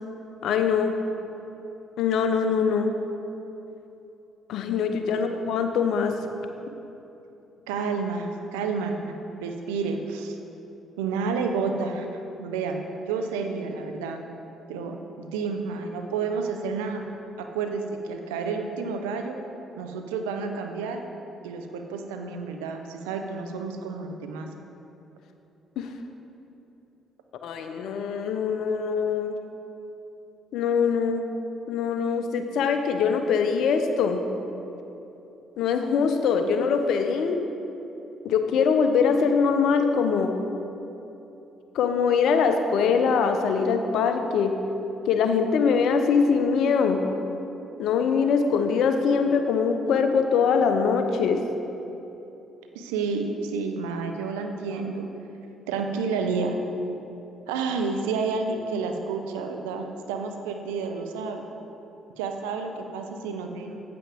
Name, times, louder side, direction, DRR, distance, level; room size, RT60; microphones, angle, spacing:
voice 1, 0.4-0.9 2.0-2.9 4.5-6.2 25.8-25.9 27.4-29.4 30.5-31.3 31.7-34.3 35.6-37.4 38.2-40.4 41.7-44.6 45.1-47.1 47.8-51.4, left 6 dB, 70° left, 6 dB, 0.6 m, -23 dB
voice 2, 7.7-9.1 9.4-10.4 11.0-12.1 12.4-12.8 13.1-14.2 14.7-17.0 17.4-19.3 19.8-21.0 21.4-24.5 52.7-55.1 55.7-56.6 57.5-61.4 62.2-63.8, right 4 dB, 85° right, 5 dB, 0.6 m, -30 dB
8.5 x 7.7 x 3.4 m, 3.0 s
hypercardioid pair, 55°, 0 cm